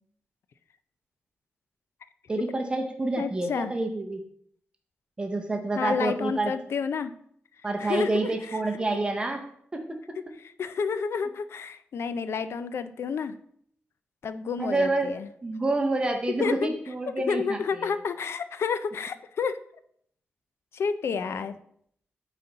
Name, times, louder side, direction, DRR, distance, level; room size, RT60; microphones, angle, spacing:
voice 1, 2.3-4.2 5.2-6.5 7.6-9.4 9.7-10.2 14.6-15.1 15.4-17.9 21.2-21.4, right 2 dB, 20° right, 4 dB, 0.7 m, -28 dB
voice 2, 3.2-3.7 5.8-7.1 7.8-8.6 8.9-9.0 10.4-13.4 14.2-15.3 16.4-16.8 17.3-19.6 20.7-21.6, left 6 dB, 75° left, 12 dB, 0.4 m, -30 dB
8.9 x 4.1 x 3.9 m, 0.66 s
wide cardioid pair, 170°, 4 cm